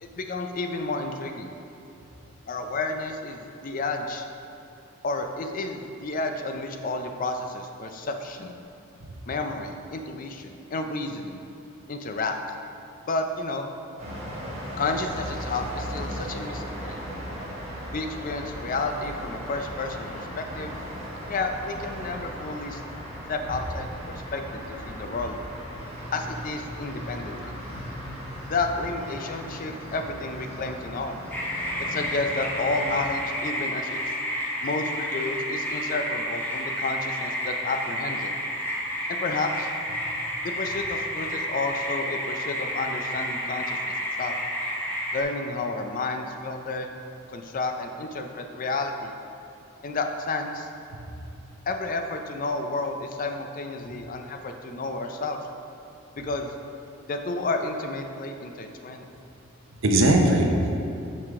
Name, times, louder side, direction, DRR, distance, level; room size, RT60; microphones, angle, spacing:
voice 1, 0.0-1.5 2.5-4.2 5.0-8.6 9.3-11.4 11.9-12.4 13.1-13.7 14.8-17.0 17.9-20.8 21.3-22.8 23.3-25.4 26.1-27.5 28.5-31.1 31.9-34.0 34.6-38.3 39.1-39.7 40.4-44.4 45.1-46.9 47.3-49.1 49.8-50.7 51.7-55.4 56.2-56.5 57.1-59.1, left 3 dB, 40° left, 5 dB, 0.4 m, -31 dB
sound 1, 14.0-33.1, equal, 30° right, 1.4 m, -37 dB
voice 2, 27.7-28.1 40.1-40.2 51.2-51.3 53.9-54.0 59.8-60.8, right 1 dB, 70° right, 2 dB, 0.7 m, -22 dB
sound 2, 31.3-45.2, equal, 10° left, 0.8 m, -30 dB
5.8 x 4.9 x 4.7 m, 2.8 s
head